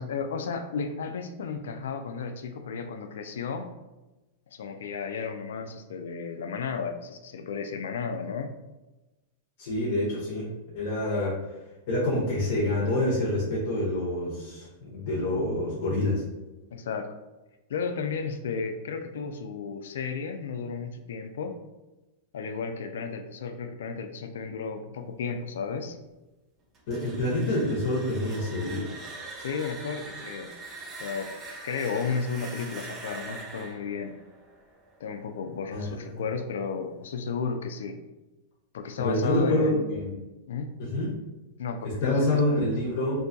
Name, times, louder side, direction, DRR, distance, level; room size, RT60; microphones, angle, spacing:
voice 1, 0.0-3.7 4.5-8.5 16.7-17.1 17.7-21.6 22.3-26.0 29.4-30.5 31.0-31.3 31.6-34.1 35.0-38.0 38.7-39.8 40.5-40.7 41.6-42.6, left 5 dB, 85° left, 7 dB, 0.3 m, -33 dB
voice 2, 9.6-11.4 11.9-16.2 26.9-28.9 35.7-36.2 39.0-40.1 40.8-41.2 41.8-43.2, left 1 dB, 65° left, -5 dB, 0.8 m, -27 dB
sound 1, 26.7-35.6, right 3 dB, 25° right, 0.5 m, -43 dB
2.6 x 2.3 x 2.6 m, 1.1 s
hypercardioid pair, 130°, 0 cm